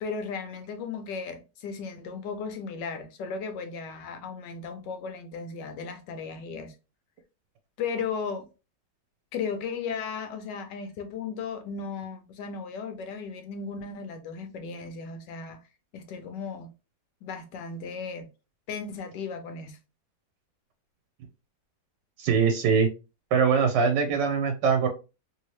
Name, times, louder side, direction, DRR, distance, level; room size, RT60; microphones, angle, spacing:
voice 1, 0.0-6.8 7.8-8.5 9.3-15.6 15.9-16.7 17.2-18.3 18.7-19.8, left 5 dB, 85° left, 1.2 m, -35 dB
voice 2, 22.2-22.9 23.3-24.9, right 6 dB, 85° right, 1.2 m, -22 dB
3.1 x 2.7 x 3.0 m
omnidirectional pair, 1.8 m